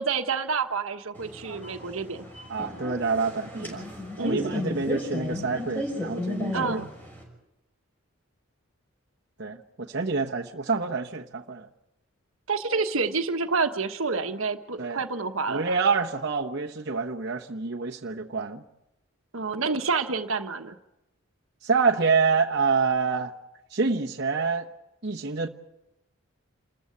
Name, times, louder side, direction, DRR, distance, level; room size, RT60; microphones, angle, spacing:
voice 1, 0.0-2.3 4.2-4.6 6.5-6.9 12.5-15.7 19.3-20.8, right 4 dB, 75° right, 1.3 m, -28 dB
sound 1, 1.1-7.2, left 1 dB, 10° left, 6.0 m, -34 dB
voice 2, 2.5-3.9 4.2-6.8 9.4-11.7 14.8-15.0 15.5-18.6 21.6-23.3 23.7-24.7 25.0-25.5, right 4 dB, 55° right, 1.1 m, -27 dB
28.0 x 14.0 x 8.5 m
head